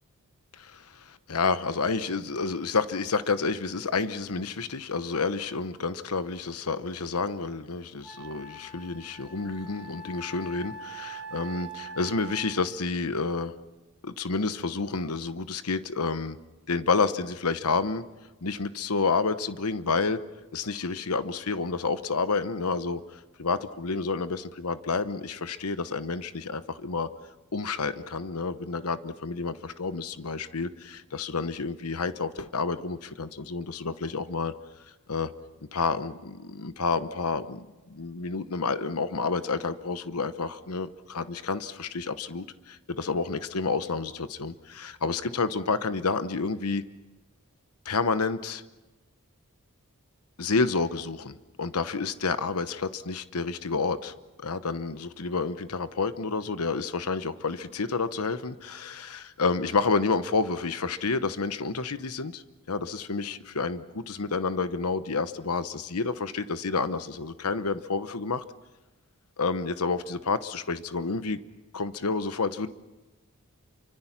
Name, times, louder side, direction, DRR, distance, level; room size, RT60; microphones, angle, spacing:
voice 1, 0.5-13.5 14.0-16.4 16.7-18.0 18.4-20.2 20.5-27.1 27.5-34.5 35.1-35.3 35.7-46.8 47.8-48.6 50.4-54.1 54.4-68.4 69.4-71.4 71.7-72.7, left 4 dB, 85° left, 12 dB, 1.0 m, -29 dB
Wind instrument woodwind instrument, 7.4-7.5 8.0-12.7, right 3 dB, 5° right, 5.7 m, -43 dB
28.0 x 25.0 x 5.9 m, 1.1 s
head